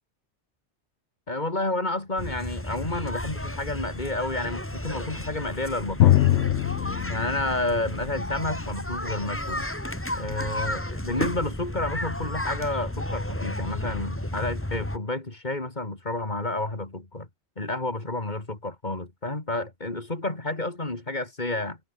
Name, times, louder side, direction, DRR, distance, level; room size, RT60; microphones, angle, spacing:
voice 1, 1.3-6.5 7.1-9.7 10.1-17.3 17.6-21.8, left 2 dB, 40° left, 3.2 m, -30 dB
sound 1, 2.2-15.0, left 1 dB, 10° left, 2.2 m, -33 dB
Drum, 6.0-9.5, left 13 dB, 90° left, 0.9 m, -24 dB
omnidirectional pair, 1.2 m